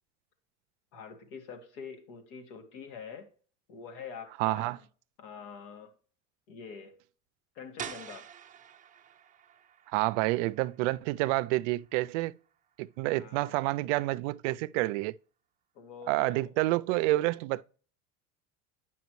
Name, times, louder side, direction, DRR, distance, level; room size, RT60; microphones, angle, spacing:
voice 1, 0.9-3.3 3.7-4.9 5.2-5.9 6.5-7.0 7.5-8.3 13.1-13.6 15.7-16.5, left 6 dB, 75° left, 2.0 m, -45 dB
voice 2, 4.4-4.8 9.9-12.4 12.8-15.1 16.1-17.6, right 20 dB, 85° right, 0.5 m, -28 dB
sound 1, 7.8-13.4, right 9 dB, 20° right, 0.7 m, -48 dB
9.2 x 5.9 x 3.1 m
cardioid pair, 140°, 35 cm